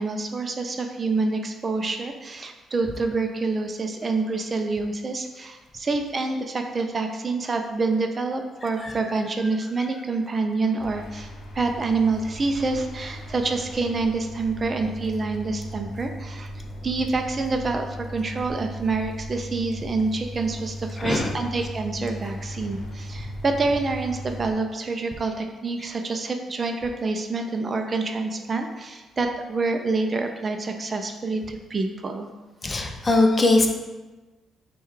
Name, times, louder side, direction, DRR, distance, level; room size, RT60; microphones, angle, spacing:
voice 1, 0.0-11.3 11.5-16.5 16.8-32.3, right 3 dB, 35° right, 5 dB, 0.4 m, -27 dB
sound 1, 10.8-24.5, equal, 75° left, 0.6 m, -37 dB
voice 2, 21.0-21.3 32.6-33.7, left 2 dB, 30° left, 4 dB, 0.5 m, -21 dB
5.4 x 2.3 x 3.2 m, 1.2 s
cardioid pair, 90°, 0 cm